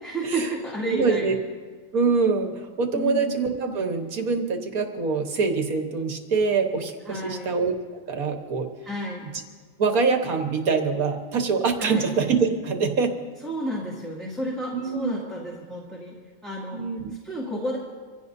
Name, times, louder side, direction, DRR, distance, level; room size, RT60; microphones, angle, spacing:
voice 1, 0.0-1.3 2.9-3.4 7.1-7.5 8.8-9.2 11.8-12.0 13.4-16.1 16.4-16.8 17.2-17.8, right 1 dB, ahead, -6 dB, 2.2 m, -31 dB
voice 2, 0.9-1.4 1.9-7.8 8.1-8.7 9.8-13.1 14.7-15.2 16.7-17.1, right 4 dB, 60° right, 4 dB, 1.7 m, -24 dB
25.5 x 16.0 x 2.7 m, 1.5 s
omnidirectional pair, 1.7 m